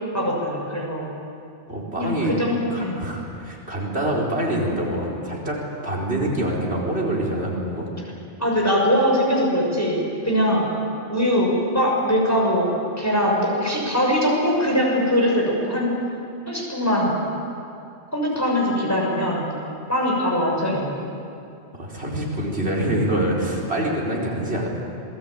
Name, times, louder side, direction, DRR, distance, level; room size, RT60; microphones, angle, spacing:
voice 1, 0.1-1.1 1.9-3.0 8.4-10.0 10.2-10.7 11.1-16.0 16.5-17.1 18.1-19.5 19.9-21.1, equal, 15° left, -3 dB, 6.2 m, -22 dB
voice 2, 1.7-2.3 2.7-7.9 21.7-24.7, right 1 dB, 75° right, -2 dB, 4.8 m, -25 dB
27.5 x 20.0 x 9.0 m, 2.6 s
omnidirectional pair, 1.1 m